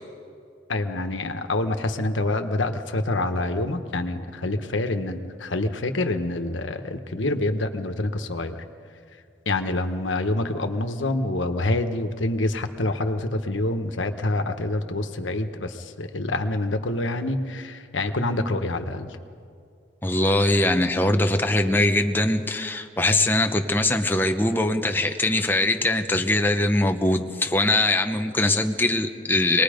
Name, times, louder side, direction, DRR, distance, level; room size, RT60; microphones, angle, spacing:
voice 1, 0.7-8.6 9.4-19.2, left 2 dB, 85° left, 7 dB, 1.3 m, -26 dB
voice 2, 20.0-29.6, left 1 dB, 10° left, 5 dB, 0.8 m, -22 dB
25.0 x 20.0 x 5.2 m, 2.4 s
head